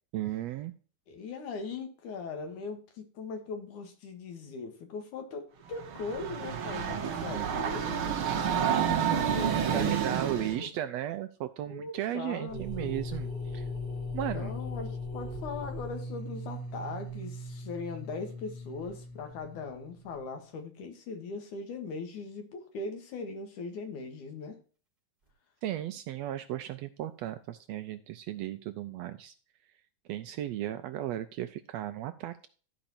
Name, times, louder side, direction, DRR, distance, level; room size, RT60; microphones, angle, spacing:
voice 1, 0.1-0.7 9.7-13.7 14.1-14.5 25.6-29.3 30.1-32.5, right 12 dB, 80° right, 10 dB, 1.6 m, -35 dB
voice 2, 1.1-10.2 10.6-10.7 11.7-12.9 14.3-24.6, left 4 dB, 80° left, 5 dB, 3.3 m, -40 dB
Train, 5.7-10.6, right 8 dB, 55° right, 1.7 m, -29 dB
sound 1, 12.5-20.2, left 1 dB, 15° right, 2.8 m, -39 dB
13.0 x 5.1 x 4.3 m, 0.39 s
omnidirectional pair, 3.4 m